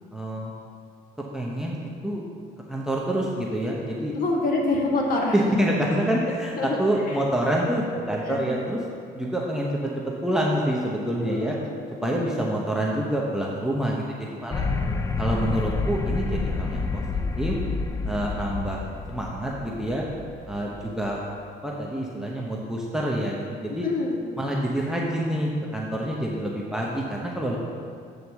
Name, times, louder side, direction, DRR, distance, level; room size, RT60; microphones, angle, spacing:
voice 1, 0.1-0.5 1.2-2.2 2.7-4.2 5.3-8.8 9.1-9.9 10.2-11.6 12.0-14.7 15.2-17.6 18.0-20.1 20.5-21.2 21.6-23.9 24.4-27.6, right 1 dB, 5° right, -3 dB, 0.9 m, -27 dB
voice 2, 4.2-5.4 6.6-6.8 8.2-8.5 11.2-11.4 12.0-12.2 14.7-15.0 23.8-24.2, left 2 dB, 55° left, -1 dB, 1.7 m, -26 dB
sound 1, 14.5-21.0, left 3 dB, 15° left, 0.4 m, -29 dB
8.1 x 4.2 x 7.0 m, 2.3 s
cardioid pair, 110°, 17 cm